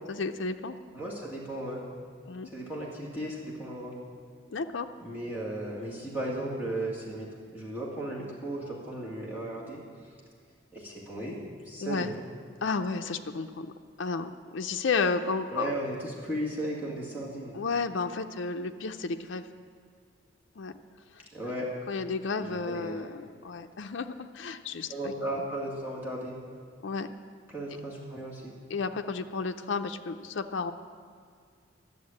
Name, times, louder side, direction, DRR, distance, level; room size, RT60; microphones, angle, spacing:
voice 1, 0.1-0.8 2.3-2.5 4.5-4.9 11.8-12.1 12.6-13.7 14.0-15.8 17.5-19.5 20.6-20.7 21.1-21.2 21.9-25.1 26.8-27.1 28.7-30.7, left 4 dB, 70° left, 6 dB, 0.5 m, -32 dB
voice 2, 0.9-1.8 2.5-3.9 5.0-9.8 10.7-11.4 11.7-12.1 15.5-17.6 21.3-21.7 22.4-23.0 24.9-26.4 27.5-28.5, right 1 dB, 10° right, -6 dB, 2.1 m, -35 dB
11.5 x 7.2 x 8.4 m, 2.1 s
head